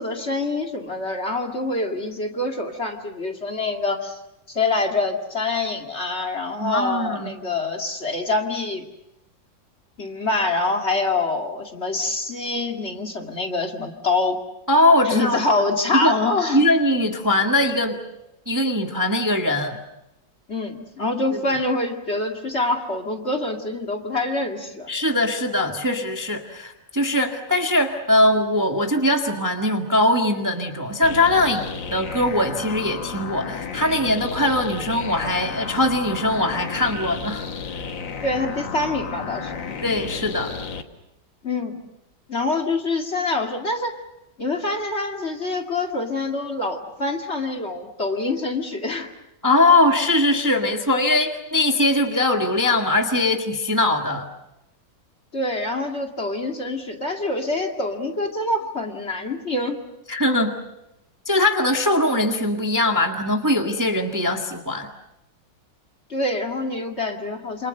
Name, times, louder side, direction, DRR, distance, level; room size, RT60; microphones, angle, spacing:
voice 1, 0.0-4.2 4.5-8.8 10.0-14.4 15.1-16.6 20.5-24.9 38.2-39.6 41.4-41.8 42.3-44.0 44.4-49.1 55.3-59.8 66.1-67.7, left 2 dB, 35° left, 2 dB, 2.5 m, -25 dB
voice 2, 6.6-7.4 14.7-15.4 15.9-16.1 16.5-18.0 18.4-19.8 21.3-21.4 24.9-37.5 39.8-40.5 49.4-54.3 60.1-60.5 61.2-64.9, left 1 dB, 10° right, 3 dB, 1.6 m, -21 dB
sound 1, 31.0-40.8, left 6 dB, 75° left, 2.3 m, -33 dB
28.0 x 26.5 x 6.6 m, 0.90 s
omnidirectional pair, 2.1 m